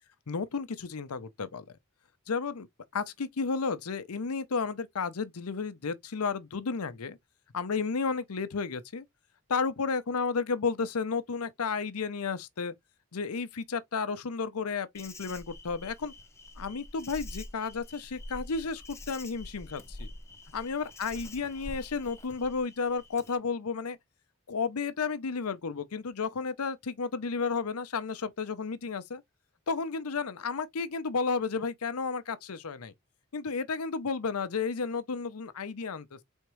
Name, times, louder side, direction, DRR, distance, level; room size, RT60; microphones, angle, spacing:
voice 1, 0.3-1.8 2.3-2.7 2.9-7.2 7.5-9.0 9.5-12.7 13.1-16.1 16.6-20.1 20.5-24.0 24.5-29.2 29.7-32.9 33.3-36.2, left 5 dB, 80° left, 0.7 m, -32 dB
Insect, 14.9-23.4, left 1 dB, 15° left, 0.8 m, -46 dB
4.4 x 3.5 x 3.1 m
head